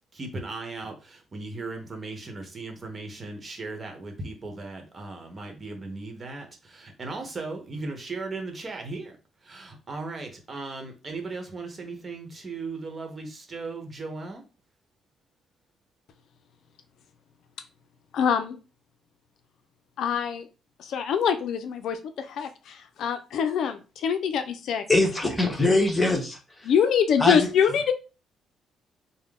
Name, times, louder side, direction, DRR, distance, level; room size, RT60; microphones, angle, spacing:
voice 1, 0.1-9.1 9.4-14.4, right 3 dB, 35° right, 1.0 m, -37 dB
voice 2, 18.1-18.6 20.0-20.5 20.9-24.8 26.6-27.9, left 7 dB, 75° left, 0.4 m, -25 dB
voice 3, 24.9-26.4 27.2-27.5, left 2 dB, 20° left, 1.1 m, -22 dB
3.6 x 2.1 x 3.6 m
cardioid pair, 90°, 0 cm